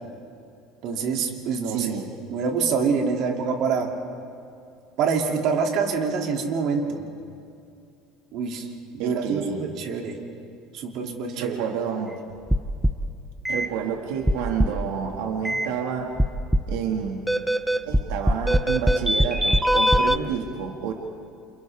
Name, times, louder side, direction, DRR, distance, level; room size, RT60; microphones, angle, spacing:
voice 1, 0.8-2.0 2.3-3.9 5.0-7.0 8.3-8.7 8.9-10.2 10.7-11.6, right 5 dB, 55° right, 1 dB, 2.9 m, -25 dB
voice 2, 1.6-2.1 9.0-9.6 11.3-12.2 13.5-16.1 16.7-17.3 17.8-20.9, right 7 dB, 90° right, 2 dB, 2.1 m, -29 dB
sound 1, 12.5-13.1 13.5-13.7 14.3-14.9 15.4-15.7 16.2-16.8 17.3-20.2, equal, ahead, 0.6 m, -21 dB
29.0 x 28.5 x 3.6 m, 2.5 s
cardioid pair, 140°, 0 cm